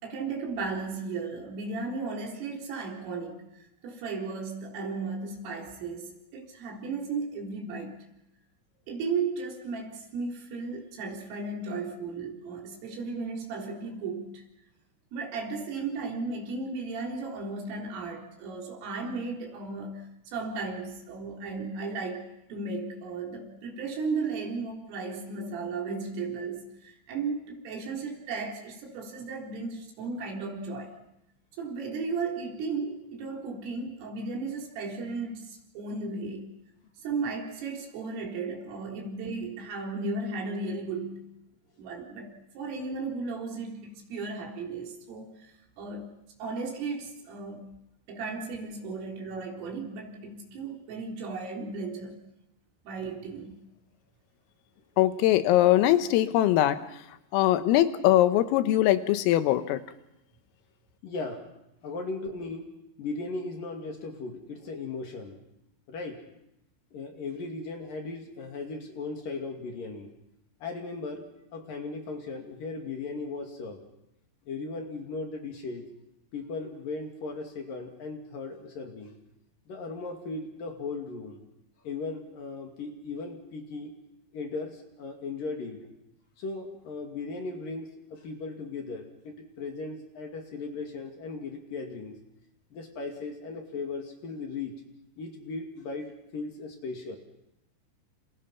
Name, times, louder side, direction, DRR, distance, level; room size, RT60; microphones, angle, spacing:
voice 1, 0.0-8.1 8.9-14.4 15.1-31.0 31.6-36.5 37.0-41.3 41.8-45.5 45.8-46.1 46.4-47.7 48.1-52.2 52.9-53.6, right 4 dB, 75° right, 0 dB, 6.4 m, -35 dB
voice 2, 55.0-56.8 57.3-59.8, left 13 dB, 90° left, 10 dB, 3.8 m, -22 dB
voice 3, 61.0-61.5 61.8-62.7 63.0-65.4 65.9-66.3 66.9-70.1 70.6-71.3 71.5-73.8 74.5-75.9 76.3-79.2 79.7-81.4 81.8-83.9 84.3-85.9 86.4-92.2 92.7-94.7 95.2-97.2, left 3 dB, 50° left, 3 dB, 3.5 m, -37 dB
29.5 x 28.5 x 5.8 m, 0.87 s
omnidirectional pair, 5.8 m